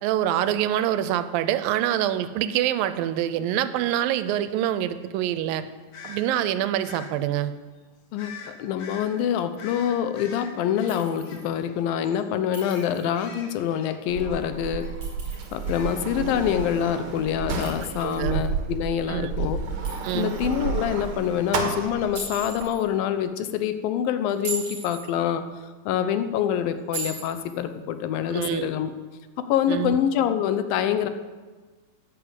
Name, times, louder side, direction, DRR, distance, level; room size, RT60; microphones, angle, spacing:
voice 1, 0.0-5.6 6.0-7.5 18.0-18.4 19.1-19.3 20.0-20.3 28.3-28.7 29.7-30.0, right 11 dB, 85° right, 13 dB, 2.4 m, -25 dB
sound 1, 5.9-6.2 6.8-7.1 8.2-8.5 8.8-9.1 9.6-11.8 12.0-12.2 12.6-14.4 14.8-15.0 15.3-16.3, left 5 dB, 55° left, 2.2 m, -43 dB
voice 2, 8.1-14.9 15.5-19.6 19.9-25.5 25.9-28.9 29.4-31.1, left 9 dB, 85° left, 10 dB, 2.6 m, -26 dB
Chink clink, 10.9-11.5 12.5-13.2 14.8-15.7 17.6-18.5 19.8-20.6 22.1-22.8 24.3-25.1 26.9-27.6, right 3 dB, 30° right, 5.0 m, -38 dB
Sliding door, 14.1-22.7, right 5 dB, 60° right, 2.5 m, -31 dB
11.0 x 9.7 x 8.0 m, 1.4 s
omnidirectional pair, 4.0 m